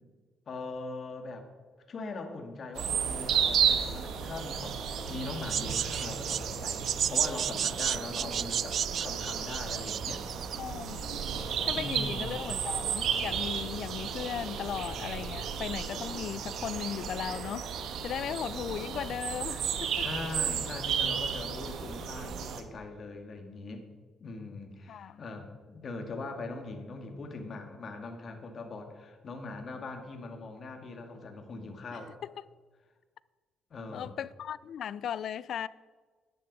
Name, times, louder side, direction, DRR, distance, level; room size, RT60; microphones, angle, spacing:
voice 1, 0.5-1.5 1.9-10.2 11.7-12.4 20.0-23.9 24.2-32.1 33.7-34.1, left 3 dB, 50° left, 2.0 m, -41 dB
sound 1, 2.7-22.6, right 7 dB, 75° right, 1.2 m, -33 dB
sound 2, 5.5-10.6, right 8 dB, 60° right, 0.3 m, -32 dB
voice 2, 10.6-11.2 11.7-17.7 18.0-20.0 24.9-25.2 32.2-32.3 33.9-35.7, left 9 dB, 65° left, 0.4 m, -37 dB
10.5 x 10.0 x 5.4 m
cardioid pair, 90°, 0 cm